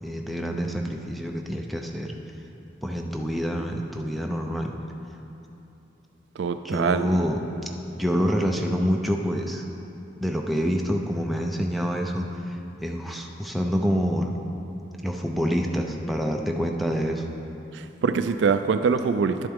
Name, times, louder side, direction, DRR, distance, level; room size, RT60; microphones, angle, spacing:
voice 1, 0.0-2.1 2.8-4.7 6.6-7.7 7.9-9.6 10.2-14.3 15.0-17.3, equal, ahead, 1 dB, 0.4 m, -27 dB
voice 2, 6.4-7.1 17.7-19.5, right 5 dB, 60° right, 10 dB, 0.3 m, -24 dB
11.0 x 7.7 x 3.5 m, 2.9 s
head